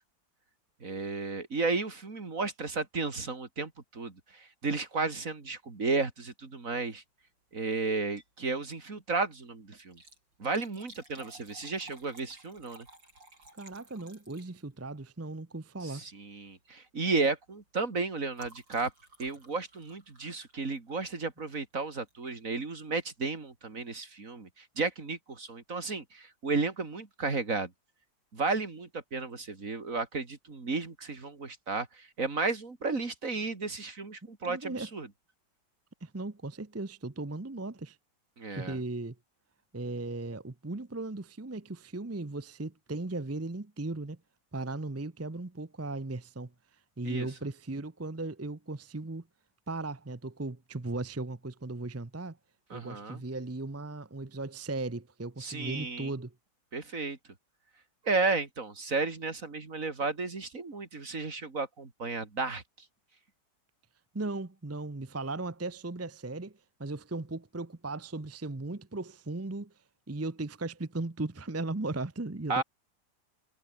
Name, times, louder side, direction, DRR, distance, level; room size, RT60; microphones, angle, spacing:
voice 1, 0.8-7.0 7.5-10.0 10.4-12.9 15.8-18.9 19.2-27.7 28.3-35.1 38.4-38.8 47.0-47.3 52.7-53.2 55.4-56.1 56.7-57.2 58.0-62.6 72.5-72.6, right 3 dB, 45° right, 3.3 m, -33 dB
Liquid, 8.1-8.4 8.8-8.9 9.8-14.9 15.9-16.2 16.5-16.8 17.1-21.1 22.1-22.3 22.9-23.0 23.2-23.3, right 2 dB, 85° right, 8.9 m, -56 dB
voice 2, 13.6-16.0 34.5-34.9 36.0-38.0 38.5-39.2 39.7-44.2 44.5-46.5 47.0-49.2 49.7-52.4 52.7-56.3 64.1-69.7 70.1-72.6, right 2 dB, 20° right, 0.4 m, -37 dB
omnidirectional pair, 2.0 m